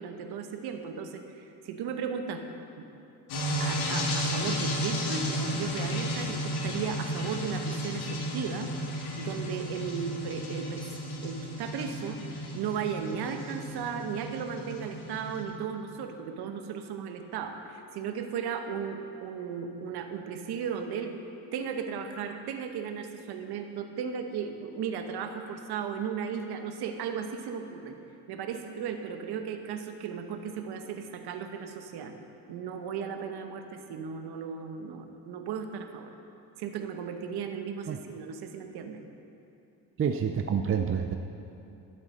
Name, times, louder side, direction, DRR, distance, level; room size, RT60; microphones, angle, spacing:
voice 1, 0.0-2.5 2.8-2.9 3.6-8.7 9.2-10.9 11.2-21.1 21.5-27.9 28.3-32.1 32.5-36.1 36.6-39.0, right 7 dB, 80° right, 6 dB, 1.1 m, -36 dB
sound 1, 3.3-15.4, equal, 85° left, 2.3 m, -33 dB
voice 2, 40.0-41.1, right 7 dB, 35° right, 6 dB, 0.6 m, -28 dB
12.0 x 8.0 x 6.5 m, 2.8 s
cardioid pair, 90°, 38 cm